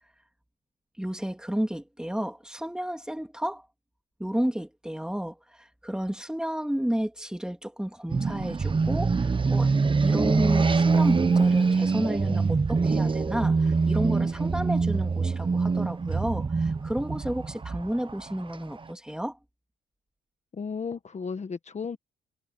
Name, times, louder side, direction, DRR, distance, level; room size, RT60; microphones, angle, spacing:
voice 1, 1.0-3.7 4.2-9.7 10.0-19.4, equal, 5° right, 3.0 m, -31 dB
sound 1, 8.1-18.8, right 4 dB, 25° right, 1.0 m, -24 dB
voice 2, 20.5-22.0, left 5 dB, 35° left, 1.4 m, -34 dB
cardioid pair, 90°, 20 cm